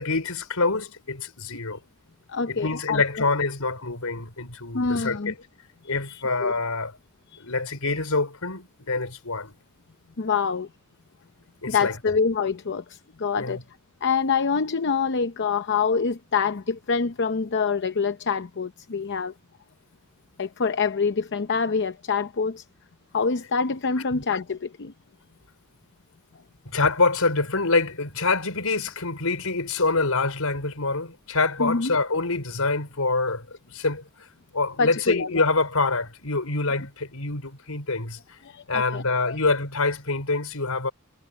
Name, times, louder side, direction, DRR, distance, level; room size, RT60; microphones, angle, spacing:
voice 1, 0.0-1.8 2.5-5.3 5.9-6.9 7.4-9.5 11.6-11.9 13.4-13.6 24.1-24.2 26.7-34.0 34.5-38.4 38.7-40.9, left 3 dB, 80° left, 5.4 m, -26 dB
voice 2, 2.3-3.2 4.7-5.3 6.1-6.5 7.3-7.4 10.2-10.7 11.7-13.6 14.0-19.3 20.4-22.6 23.1-24.9 31.6-32.0 34.8-35.4 38.4-39.4, left 5 dB, 55° left, 0.7 m, -26 dB
head